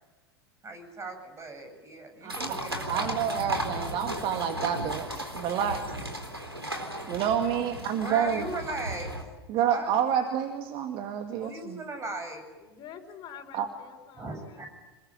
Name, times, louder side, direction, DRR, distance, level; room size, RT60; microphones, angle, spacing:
voice 1, 0.6-3.1 8.0-9.1 9.7-9.9 11.4-12.4 14.2-14.7, right 2 dB, 20° right, 6 dB, 8.0 m, -38 dB
voice 2, 2.2-5.9 7.1-8.5 9.5-11.8 13.5-13.7, right 8 dB, 40° right, 6 dB, 2.1 m, -29 dB
sound 1, 2.3-9.2, right 1 dB, 90° right, 3.9 m, -35 dB
voice 3, 12.6-14.6, left 8 dB, 35° left, 3 dB, 5.2 m, -47 dB
27.0 x 21.0 x 9.1 m, 1.2 s
figure-of-eight pair, 80°, 13 cm